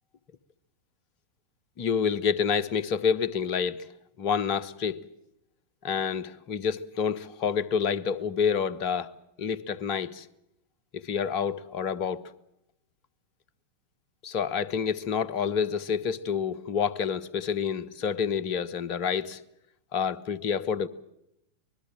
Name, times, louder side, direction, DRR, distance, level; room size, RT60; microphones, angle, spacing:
voice 1, 1.8-3.9 4.2-5.0 5.8-9.1 9.4-10.3 10.9-12.3 14.2-19.4 19.9-20.9, left 7 dB, 45° left, 1.1 m, -28 dB
25.5 x 21.0 x 7.5 m
figure-of-eight pair, 90°, 0 cm